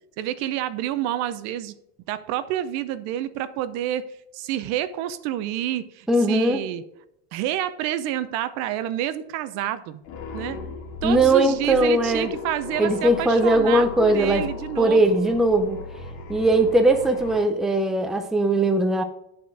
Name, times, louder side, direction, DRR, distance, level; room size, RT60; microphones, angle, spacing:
voice 1, 0.2-1.7 2.1-6.8 7.3-10.0 10.3-10.6 11.0-15.3, right 12 dB, 55° right, 13 dB, 0.7 m, -28 dB
voice 2, 6.1-6.6 11.0-12.3 12.8-14.5 14.8-15.8 16.3-19.0, right 1 dB, ahead, 6 dB, 0.5 m, -20 dB
sound 1, 10.0-17.4, left 5 dB, 70° left, 2.0 m, -36 dB
10.5 x 4.4 x 4.7 m, 0.80 s
cardioid pair, 150°, 31 cm